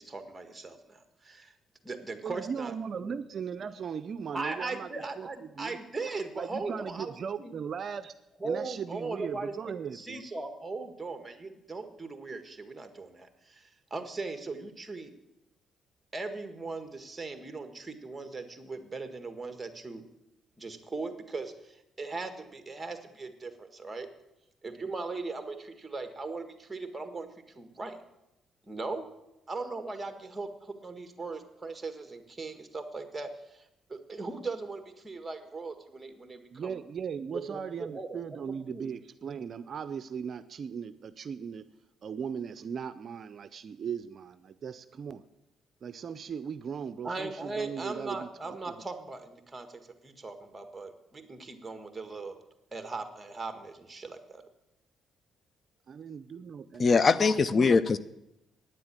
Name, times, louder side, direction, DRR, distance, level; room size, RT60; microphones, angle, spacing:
voice 1, 0.0-1.5 1.8-3.1 4.3-7.5 8.4-9.6 9.9-15.1 16.1-20.0 20.6-24.1 24.6-27.3 27.5-28.0 28.6-29.1 29.5-36.8 37.3-38.9 47.0-52.4 52.7-54.4, right 3 dB, 20° right, 7 dB, 1.6 m, -39 dB
voice 2, 2.2-4.9 5.2-5.3 5.6-5.8 6.3-8.2 8.4-10.3 36.5-41.6 42.0-45.2 45.8-48.8 55.9-56.9, right 7 dB, 55° right, 12 dB, 0.5 m, -38 dB
voice 3, 56.8-58.0, left 4 dB, 40° left, 17 dB, 0.5 m, -22 dB
9.6 x 7.7 x 8.9 m, 0.87 s
cardioid pair, 90°, 0 cm